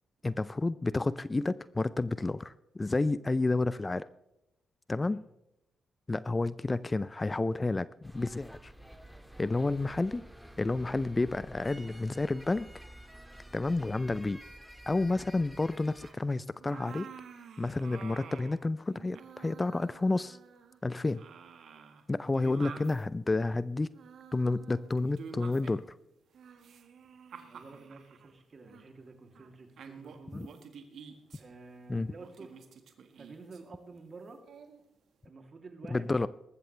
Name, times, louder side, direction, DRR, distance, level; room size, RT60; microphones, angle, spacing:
voice 1, 0.2-4.1 4.9-5.2 6.1-8.7 9.4-10.2 10.6-12.7 13.5-14.4 14.9-17.1 17.6-20.4 20.8-21.2 22.1-23.9 24.3-25.8 30.3-30.5 31.9-32.1 35.9-36.3, left 2 dB, 25° left, 17 dB, 0.5 m, -30 dB
sound 1, 8.0-16.1, right 1 dB, 5° right, 1.8 m, -50 dB
sound 2, 16.0-16.2 16.6-18.6 18.9-20.8 21.1-23.0 23.9-25.9 26.3-28.3 28.7-28.9 29.3-29.5 29.8-31.4 32.2-33.6 34.4-34.8, right 6 dB, 70° right, 1.6 m, -49 dB
voice 2, 27.4-30.5 31.3-32.6 33.1-34.4 35.2-36.1, right 3 dB, 45° right, 4 dB, 2.9 m, -50 dB
19.5 x 15.0 x 3.3 m, 0.86 s
supercardioid pair, 50°, 0 cm